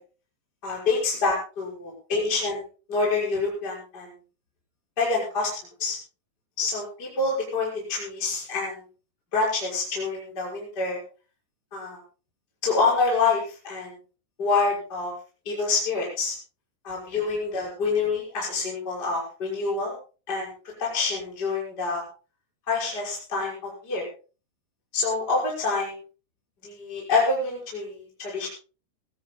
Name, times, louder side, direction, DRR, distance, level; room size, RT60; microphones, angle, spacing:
voice 1, 0.6-2.6 2.9-4.1 5.0-5.5 5.8-6.0 6.6-8.8 9.3-11.0 11.7-12.0 12.6-13.9 14.4-15.1 15.4-16.3 16.8-19.9 20.3-20.5 20.8-22.0 22.7-24.0 24.9-26.0 26.6-28.5, left 4 dB, 20° left, -3 dB, 6.1 m, -26 dB
23.0 x 17.0 x 2.3 m, 0.35 s
omnidirectional pair, 5.6 m